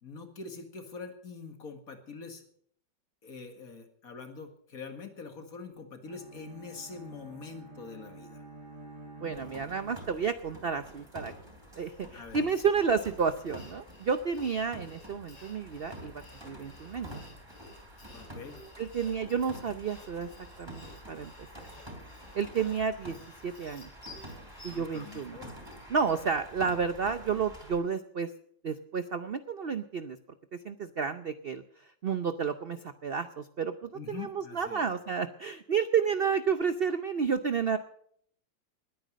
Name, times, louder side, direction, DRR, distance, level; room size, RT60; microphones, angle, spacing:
voice 1, 0.0-2.4 3.2-8.4 9.2-9.6 12.1-12.4 18.1-18.6 24.7-25.6 33.9-34.9, left 4 dB, 50° left, 6 dB, 2.3 m, -44 dB
Bowed string instrument, 6.0-10.5, right 2 dB, 45° right, 5.5 m, -49 dB
voice 2, 9.2-11.3 11.8-17.2 18.8-20.3 20.6-21.7 22.3-23.2 23.4-23.9 24.6-25.4 25.9-28.3 28.6-30.2 30.5-37.8, right 6 dB, 65° right, 11 dB, 0.5 m, -31 dB
sound 1, 9.3-27.8, equal, 15° right, 3.8 m, -48 dB
Sawing, 12.9-26.5, left 2 dB, 80° left, 5.4 m, -55 dB
20.5 x 9.2 x 6.4 m, 0.65 s
omnidirectional pair, 1.9 m